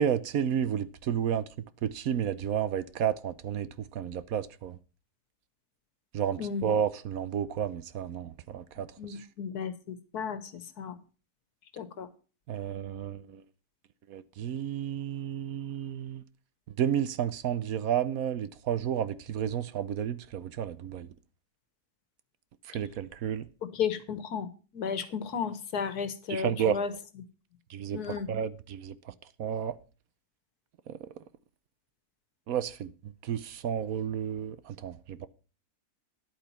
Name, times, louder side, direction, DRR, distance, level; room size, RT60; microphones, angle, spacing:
voice 1, 0.0-1.4 1.8-4.8 6.1-8.9 12.5-13.4 14.1-16.2 16.8-21.1 22.7-23.5 26.3-26.8 27.7-28.9 29.4-29.8 30.9-31.0 32.5-32.9 33.2-35.3, right 9 dB, 70° right, 1.2 m, -31 dB
voice 2, 9.0-11.0 11.7-12.1 23.7-24.5 24.7-26.9 27.9-28.3, left 6 dB, 90° left, 1.8 m, -34 dB
11.0 x 8.5 x 5.7 m
omnidirectional pair, 1.6 m